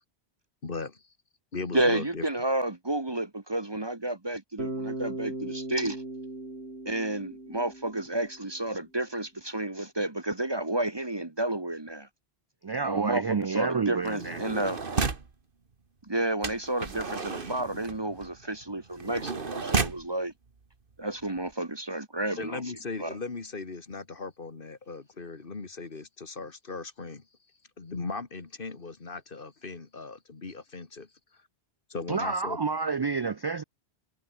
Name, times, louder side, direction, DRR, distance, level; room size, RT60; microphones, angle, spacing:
voice 1, 0.6-1.0 1.5-2.2 22.4-27.3 27.8-31.4 31.9-32.6, left 4 dB, 55° left, 2.0 m, -38 dB
voice 2, 1.7-6.0 6.8-12.1 12.8-14.8 16.0-20.3 21.0-22.6 23.0-23.2, right 1 dB, 25° right, 1.3 m, -31 dB
Bass guitar, 4.6-8.6, right 2 dB, 85° right, 5.1 m, -38 dB
voice 3, 12.6-14.4 32.1-33.6, right 5 dB, 40° right, 0.3 m, -29 dB
sound 1, 14.0-15.3 16.4-20.1 20.9-21.0 21.2-21.5, right 4 dB, 60° right, 1.9 m, -33 dB
omnidirectional pair, 1.1 m